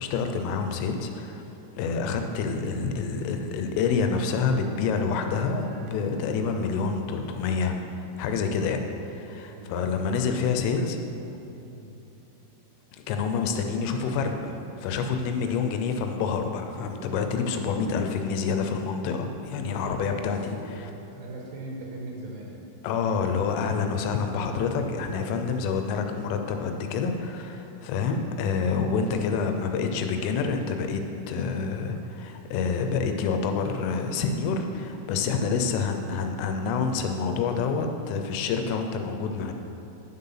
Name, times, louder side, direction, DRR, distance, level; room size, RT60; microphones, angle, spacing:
voice 1, 0.0-1.4 1.8-11.0 13.1-20.9 22.8-31.0 31.3-39.5, left 5 dB, 85° left, 5 dB, 3.3 m, -27 dB
sound 1, 3.9-8.0, right 6 dB, 85° right, 3.3 m, -47 dB
voice 2, 9.4-10.0 11.7-12.0 19.8-22.6, right 2 dB, 70° right, -2 dB, 3.1 m, -41 dB
9.8 x 7.8 x 5.7 m, 2.9 s
omnidirectional pair, 5.7 m